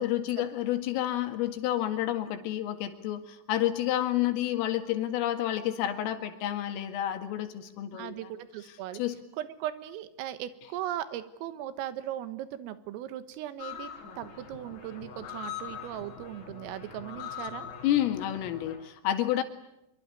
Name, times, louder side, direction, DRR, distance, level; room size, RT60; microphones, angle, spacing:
voice 1, 0.0-8.1 8.9-9.2 17.8-19.4, left 12 dB, 80° left, 7 dB, 4.6 m, -29 dB
voice 2, 7.9-9.0 9.4-13.9 14.2-17.7, right 12 dB, 85° right, 12 dB, 4.0 m, -38 dB
sound 1, 13.6-18.8, left 8 dB, 40° left, 5.0 m, -42 dB
25.0 x 23.5 x 9.9 m, 0.85 s
omnidirectional pair, 5.9 m